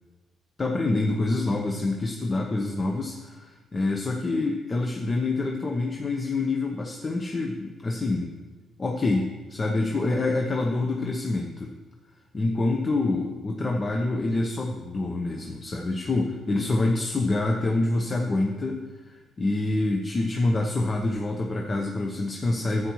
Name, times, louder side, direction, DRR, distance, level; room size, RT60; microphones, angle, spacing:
voice 1, 0.6-8.3 8.8-11.7 12.3-22.9, left 2 dB, 35° left, 1 dB, 0.9 m, -26 dB
11.0 x 8.2 x 3.1 m, 1.3 s
cardioid pair, 90°, 0 cm